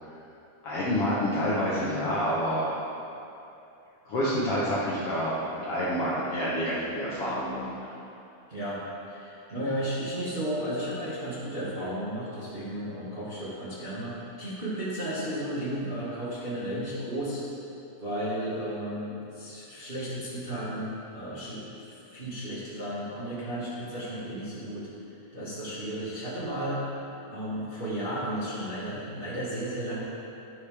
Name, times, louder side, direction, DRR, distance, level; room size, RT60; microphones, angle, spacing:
voice 1, 0.6-2.7 4.1-5.3 5.6-7.9, equal, 55° left, -7 dB, 1.8 m, -28 dB
voice 2, 8.5-8.8 9.1-17.4 18.0-21.7 22.1-24.9 25.3-26.8 27.3-30.0, right 1 dB, 25° right, -9 dB, 1.5 m, -33 dB
11.5 x 10.5 x 3.5 m, 2.7 s
omnidirectional pair, 3.9 m